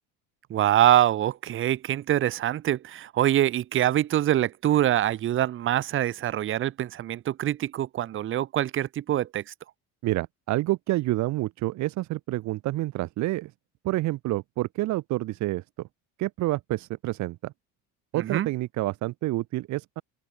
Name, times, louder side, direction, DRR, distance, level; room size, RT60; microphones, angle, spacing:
voice 1, 0.5-9.5 18.1-18.5, right 12 dB, 35° right, 1.4 m, -24 dB
voice 2, 10.0-13.5 13.8-15.6 16.2-17.5 18.1-20.0, right 17 dB, 55° right, 2.1 m, -28 dB
open air
cardioid pair, 160°, 34 cm